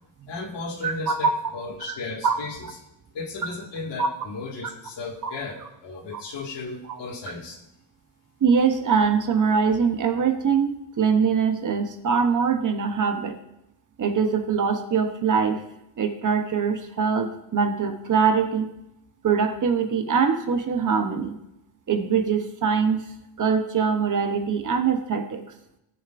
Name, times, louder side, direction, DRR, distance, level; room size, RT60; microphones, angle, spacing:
voice 1, 0.3-2.8 3.1-7.6, left 3 dB, 65° left, 0 dB, 2.0 m, -35 dB
voice 2, 0.8-1.3 2.2-2.4 4.0-4.1 6.1-6.2 8.4-13.4 14.0-15.6 16.0-18.7 19.2-21.3 21.9-23.0 23.4-25.4, right 6 dB, 40° right, 6 dB, 0.9 m, -23 dB
17.5 x 6.8 x 2.5 m, 0.84 s
cardioid pair, 150°, 46 cm